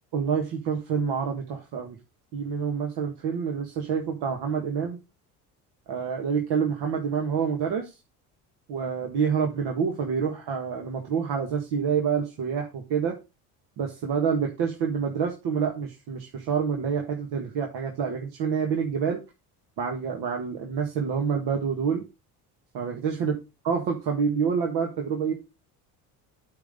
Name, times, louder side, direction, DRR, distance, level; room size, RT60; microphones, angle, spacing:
voice 1, 0.1-2.0 2.3-5.0 5.9-7.9 8.7-13.1 13.8-19.2 19.8-22.0 22.7-23.3 23.6-25.3, right 6 dB, 60° right, 2 dB, 1.7 m, -27 dB
8.4 x 4.1 x 5.1 m, 0.27 s
hypercardioid pair, 70°, 44 cm